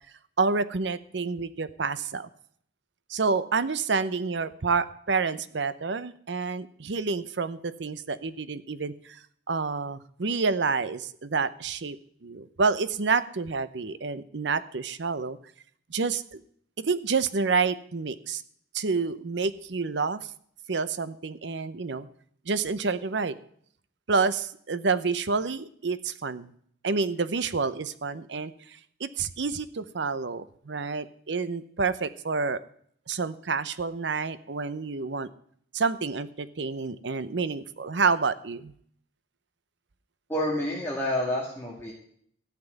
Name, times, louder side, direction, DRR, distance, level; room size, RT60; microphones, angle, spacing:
voice 1, 0.4-2.3 3.1-9.2 9.5-12.0 12.2-15.4 15.9-16.4 16.8-18.4 18.7-20.3 20.7-22.1 22.5-23.4 24.1-26.5 26.8-32.6 33.1-35.3 35.7-38.7, right 4 dB, 75° right, 14 dB, 0.7 m, -28 dB
voice 2, 40.3-41.9, left 1 dB, 15° left, -4 dB, 2.3 m, -28 dB
14.0 x 6.0 x 9.1 m, 0.64 s
head